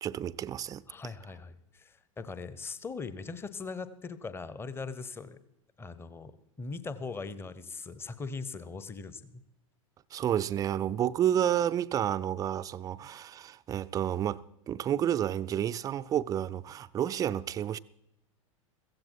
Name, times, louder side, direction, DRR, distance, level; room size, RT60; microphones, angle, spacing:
voice 1, 0.0-0.8 10.1-17.8, right 10 dB, 20° right, 0.5 m, -30 dB
voice 2, 0.9-5.4 5.8-6.3 6.6-9.4, left 4 dB, 15° left, 0.9 m, -40 dB
15.5 x 15.5 x 4.6 m
figure-of-eight pair, 90°, 18 cm